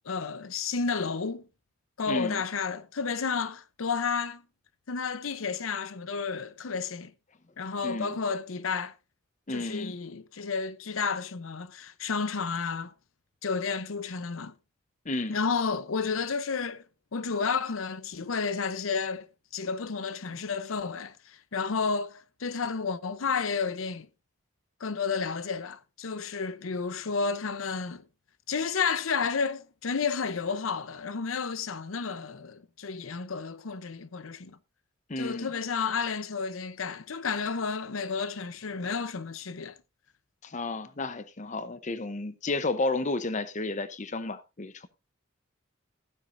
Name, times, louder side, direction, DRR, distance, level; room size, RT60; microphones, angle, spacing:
voice 1, 0.0-1.4 2.0-4.4 4.9-7.1 7.6-8.9 9.5-12.9 13.4-14.5 15.3-16.8 17.1-19.3 19.5-24.1 24.8-28.0 28.5-34.6 35.2-39.7, left 5 dB, 85° left, 0.7 m, -31 dB
voice 2, 2.1-2.4 7.8-8.1 9.5-9.9 15.0-15.4 35.1-35.5 40.4-44.9, left 2 dB, 35° left, 0.8 m, -32 dB
15.0 x 9.3 x 2.6 m
head